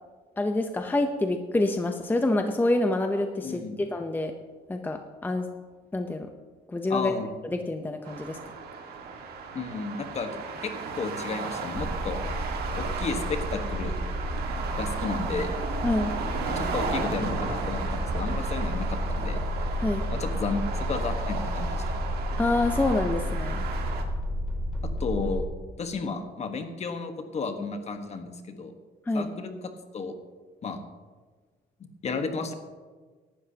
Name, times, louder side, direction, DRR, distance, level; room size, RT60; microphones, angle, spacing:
voice 1, 0.4-4.3 4.7-5.5 5.9-6.3 6.7-7.1 7.4-8.4 15.8-16.1 19.8-20.0 22.4-23.6 29.1-29.3, left 2 dB, 10° left, 5 dB, 0.7 m, -27 dB
voice 2, 3.4-3.8 6.9-7.3 9.5-10.3 10.6-12.2 12.8-14.0 14.8-15.5 16.5-19.4 20.1-22.0 25.0-25.5 25.8-28.7 29.1-30.2 30.6-30.8 32.0-32.5, left 4 dB, 40° left, 6 dB, 1.4 m, -33 dB
sound 1, 8.0-24.0, right 4 dB, 65° right, 1.8 m, -35 dB
sound 2, 11.7-25.4, equal, 5° right, 2.1 m, -31 dB
17.5 x 12.0 x 2.9 m, 1.4 s
cardioid pair, 110°, 17 cm